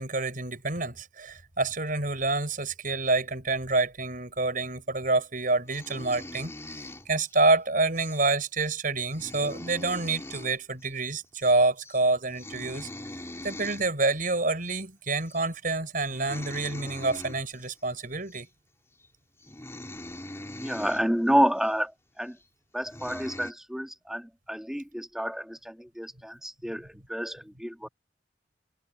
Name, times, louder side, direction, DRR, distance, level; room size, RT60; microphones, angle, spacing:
voice 1, 0.0-6.8 7.1-12.9 13.4-18.5, right 3 dB, 50° right, 5.4 m, -27 dB
sound 1, 5.7-7.5 8.0-8.2 8.6-8.7 9.0-10.6 10.8-11.0 11.2-11.5 11.8-12.0 12.3-13.9 14.7-14.8 15.3-15.5 16.0-17.7 18.3-18.4 19.0-19.1 19.4-21.1 21.6-21.7 22.4-22.5 22.8-23.5, left 1 dB, 15° left, 3.5 m, -42 dB
voice 2, 20.6-21.9 22.2-22.4 22.7-27.9, equal, 5° right, 2.0 m, -29 dB
head